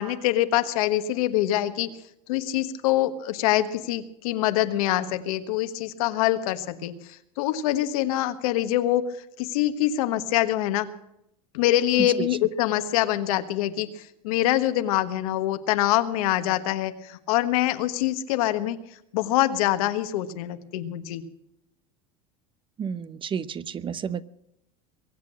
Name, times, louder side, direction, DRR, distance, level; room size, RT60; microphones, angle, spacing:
voice 1, 0.0-1.9 2.3-9.0 9.4-10.9 11.5-18.8 19.1-21.2, left 14 dB, 85° left, 10 dB, 1.4 m, -25 dB
voice 2, 22.8-24.2, right 7 dB, 30° right, 17 dB, 0.7 m, -31 dB
23.0 x 8.3 x 7.4 m, 0.80 s
supercardioid pair, 120°, 18 cm